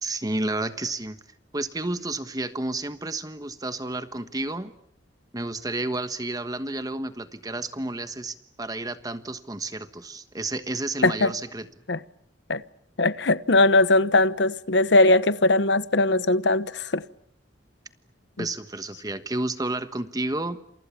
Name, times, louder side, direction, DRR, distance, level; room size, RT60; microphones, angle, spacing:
voice 1, 0.0-1.2 1.5-4.7 5.3-11.7 18.4-20.6, right 2 dB, 20° right, 1.3 m, -31 dB
voice 2, 13.0-17.0, left 2 dB, 65° left, 1.0 m, -20 dB
29.0 x 28.0 x 7.2 m
head